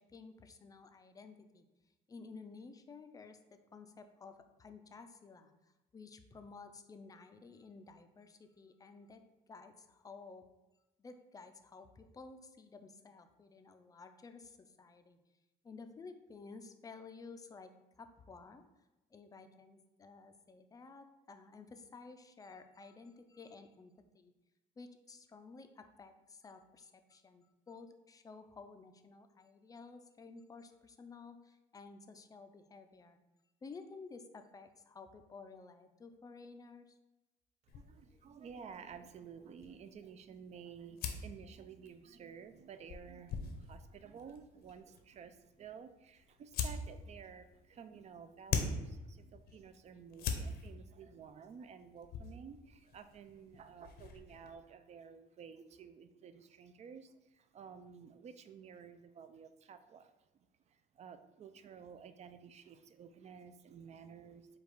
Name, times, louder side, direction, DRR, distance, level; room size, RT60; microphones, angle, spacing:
voice 1, 0.0-1.7 2.1-5.5 5.9-10.5 11.0-15.2 15.6-18.6 19.1-24.3 24.8-33.2 33.6-37.0, left 4 dB, 20° left, 7 dB, 0.4 m, -53 dB
sound 1, 37.7-54.5, left 5 dB, 70° left, 0.7 m, -44 dB
voice 2, 37.7-64.6, right 7 dB, 40° right, 10 dB, 0.4 m, -53 dB
5.0 x 2.4 x 4.6 m, 1.1 s
cardioid pair, 110°, 17 cm